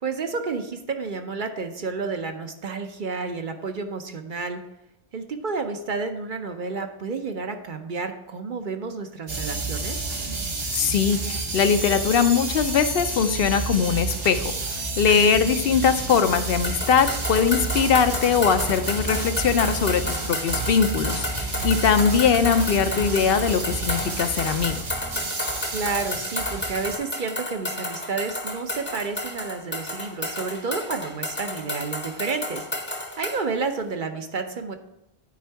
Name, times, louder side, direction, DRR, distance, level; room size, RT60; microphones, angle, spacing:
voice 1, 0.0-4.6 5.1-10.1 15.1-15.3 25.7-34.7, right 4 dB, 55° right, 6 dB, 0.8 m, -30 dB
sound 1, 9.3-27.0, right 3 dB, 70° right, 1.4 m, -30 dB
voice 2, 10.7-24.8, left 6 dB, 70° left, 9 dB, 0.8 m, -21 dB
sound 2, 16.6-33.4, left 1 dB, 10° left, 0.7 m, -32 dB
9.5 x 4.6 x 4.5 m, 0.87 s
omnidirectional pair, 1.1 m